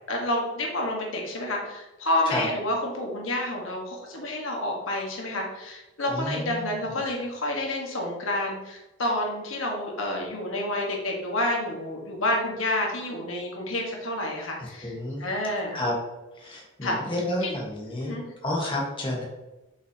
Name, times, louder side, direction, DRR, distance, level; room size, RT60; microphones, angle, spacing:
voice 1, 0.1-14.9 15.2-15.8 16.8-17.0 17.4-17.5 18.0-18.3, left 1 dB, 80° left, 0 dB, 1.6 m, -29 dB
voice 2, 6.1-6.8 14.8-15.2 15.7-15.9 16.4-18.1 18.4-19.2, left 1 dB, 25° left, -2 dB, 1.5 m, -30 dB
7.4 x 5.7 x 2.9 m, 1.0 s
head